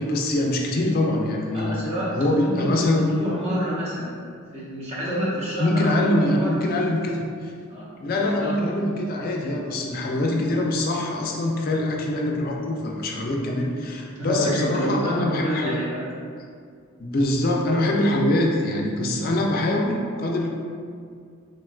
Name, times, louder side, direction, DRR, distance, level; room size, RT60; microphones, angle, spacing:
voice 1, 0.0-1.8 2.1-3.1 5.6-7.5 8.0-15.7 17.0-20.5, left 1 dB, 45° left, 0 dB, 0.3 m, -24 dB
voice 2, 1.5-4.2 4.5-6.5 7.7-8.6 14.2-16.1, equal, 30° right, -7 dB, 0.7 m, -28 dB
3.6 x 2.2 x 2.3 m, 2.2 s
head